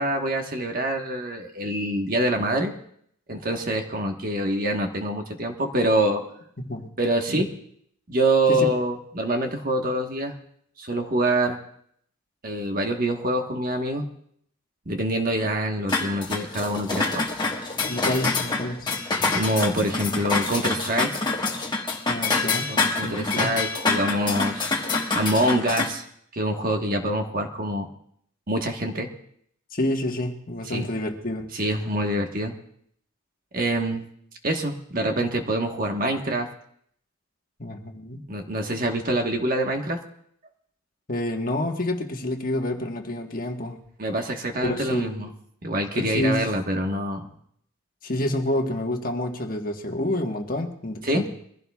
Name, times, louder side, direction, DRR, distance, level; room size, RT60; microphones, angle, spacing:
voice 1, 0.0-2.7 3.3-6.2 7.0-7.5 8.1-10.3 10.8-11.6 12.4-14.1 14.9-17.3 19.2-21.1 22.7-26.0 26.3-27.9 28.5-29.1 30.7-30.9 31.5-32.5 33.5-34.0 34.4-36.5 38.3-40.0 44.0-45.3 45.6-47.3 51.0-51.3, right 1 dB, 40° right, 3 dB, 1.3 m, -25 dB
voice 2, 6.6-6.9 7.3-7.4 8.5-8.7 17.9-18.9 22.1-23.6 29.7-31.4 37.6-38.3 41.1-43.8 44.6-45.3 45.9-46.6 48.0-51.3, left 1 dB, 40° left, 2 dB, 1.4 m, -28 dB
sound 1, 15.9-25.9, left 3 dB, 20° left, 1.3 m, -26 dB
23.0 x 16.0 x 2.4 m, 0.67 s
head